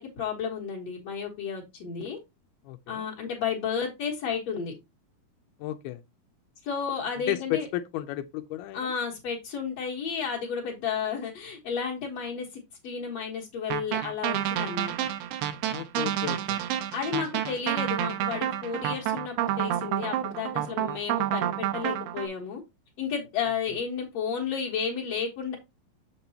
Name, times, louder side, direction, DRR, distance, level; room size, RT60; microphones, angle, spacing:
voice 1, 0.0-2.2 2.9-4.7 6.6-7.7 8.7-14.9 16.9-22.6 23.0-25.6, left 6 dB, 55° left, 2.1 m, -32 dB
voice 2, 2.7-3.0 5.6-6.0 7.3-8.8 15.7-16.6, left 14 dB, 85° left, 2.5 m, -33 dB
sound 1, 13.7-22.3, right 12 dB, 85° right, 2.7 m, -29 dB
6.8 x 6.7 x 2.8 m
omnidirectional pair, 4.4 m